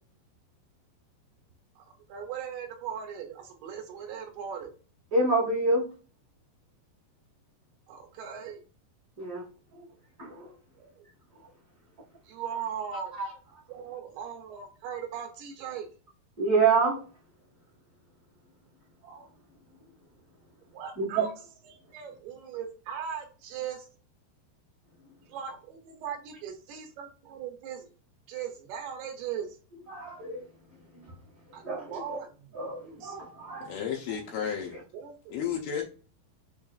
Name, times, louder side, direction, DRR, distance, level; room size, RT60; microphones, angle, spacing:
voice 1, 1.8-4.7 7.9-8.6 10.8-11.1 12.3-13.1 13.7-15.9 20.7-21.3 21.6-23.9 25.3-27.9 28.3-29.6 31.5-33.2 34.9-35.4, right 8 dB, 75° right, 2.4 m, -39 dB
voice 2, 5.1-5.8 9.2-9.4 10.2-10.5 13.2-13.3 16.4-17.0 19.0-19.2 21.0-21.2 29.9-30.4 31.6-32.2 32.5-33.7, right 3 dB, 40° right, 1.2 m, -27 dB
voice 3, 33.6-34.8 35.3-35.8, left 8 dB, 85° left, 2.1 m, -32 dB
6.8 x 2.3 x 2.3 m
omnidirectional pair, 5.0 m